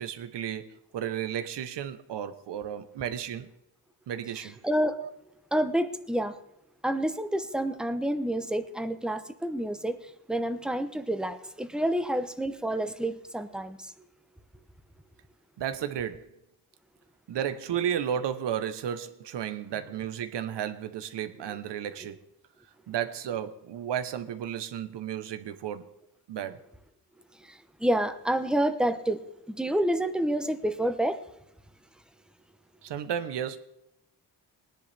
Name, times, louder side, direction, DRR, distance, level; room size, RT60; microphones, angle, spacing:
voice 1, 0.0-3.5 4.1-4.6 5.0-5.1 15.6-16.2 17.3-22.2 22.9-25.9 26.3-26.6 32.8-33.6, right 9 dB, 85° right, 1.0 m, -33 dB
voice 2, 4.6-5.0 5.5-6.4 6.8-10.0 10.3-13.9 21.5-21.6 27.5-29.2 29.5-31.2, right 1 dB, ahead, 0.9 m, -28 dB
19.5 x 10.5 x 3.4 m
cardioid pair, 90°, 41 cm